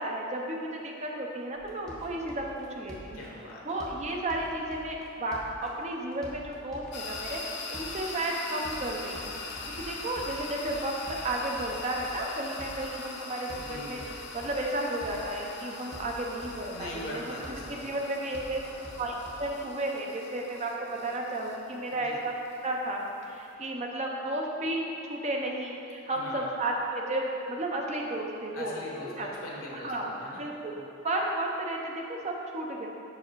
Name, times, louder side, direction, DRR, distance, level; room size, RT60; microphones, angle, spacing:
voice 1, 0.0-3.3 3.6-10.9 11.2-14.0 14.3-17.2 17.8-18.6 19.0-22.3 22.6-23.0 23.3-28.7 29.1-29.3 29.7-30.1 30.4-30.7 31.0-32.9, right 1 dB, 35° right, 0 dB, 0.7 m, -33 dB
sound 1, 1.6-19.6, equal, 5° left, 0.8 m, -47 dB
voice 2, 3.1-3.8 9.5-9.8 13.5-14.0 16.7-17.9 21.9-22.2 26.0-26.5 28.5-30.4 30.8-30.9, left 1 dB, 75° left, -3 dB, 1.2 m, -42 dB
sound 2, 6.9-23.5, left 3 dB, 55° left, 0.6 m, -42 dB
5.2 x 4.8 x 4.6 m, 2.6 s
head